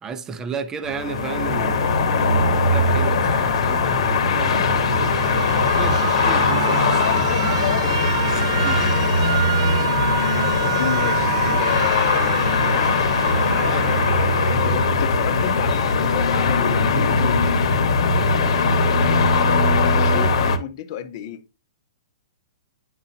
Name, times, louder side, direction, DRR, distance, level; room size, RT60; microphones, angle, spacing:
voice 1, 0.0-4.7 5.6-9.0 18.1-18.4, right 6 dB, 15° right, 0.7 m, -34 dB
sound 1, 0.9-20.6, left 3 dB, 70° left, 1.2 m, -20 dB
Alarm, 4.5-15.5, right 11 dB, 60° right, 0.3 m, -29 dB
voice 2, 10.7-12.9 13.5-17.4 19.9-21.4, left 9 dB, 45° left, 0.9 m, -31 dB
10.0 x 3.9 x 2.7 m
hypercardioid pair, 150°, 3 cm